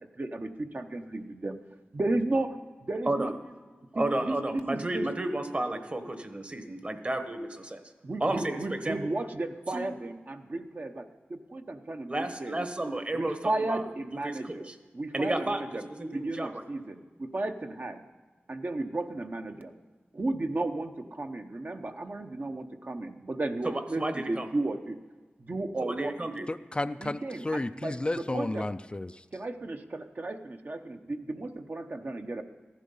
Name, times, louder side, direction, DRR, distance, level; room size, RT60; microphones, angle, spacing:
voice 1, 0.2-1.6 1.9-2.5 2.9-3.3 4.0-5.1 8.0-12.7 13.1-14.7 14.9-15.9 16.1-18.0 18.5-19.7 20.1-25.0 25.4-26.5 27.0-28.7 29.3-32.4, right 2 dB, 50° right, 5 dB, 0.9 m, -34 dB
voice 2, 3.9-7.8 8.2-9.1 9.7-9.8 12.1-13.8 14.2-14.7 15.1-16.6 23.6-24.5 25.8-26.4, right 1 dB, 35° right, 8 dB, 1.2 m, -32 dB
voice 3, 26.5-29.2, left 2 dB, 25° left, 11 dB, 0.3 m, -32 dB
15.0 x 11.5 x 5.4 m, 1.4 s
wide cardioid pair, 80°, 4 cm